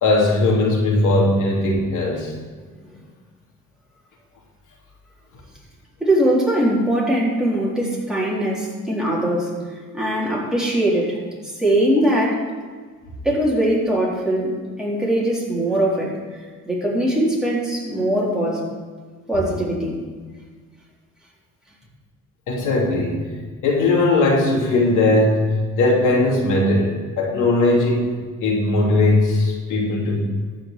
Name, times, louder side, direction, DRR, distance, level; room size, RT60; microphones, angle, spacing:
voice 1, 0.0-2.3 22.5-23.3 23.6-28.1 28.4-30.3, left 2 dB, 85° left, -2 dB, 2.9 m, -19 dB
voice 2, 6.0-9.5 9.9-11.2 11.4-12.5 13.2-16.1 16.7-18.7 19.3-20.0, right 1 dB, ahead, -5 dB, 4.0 m, -21 dB
13.5 x 5.3 x 6.9 m, 1.5 s
cardioid pair, 90°, 30 cm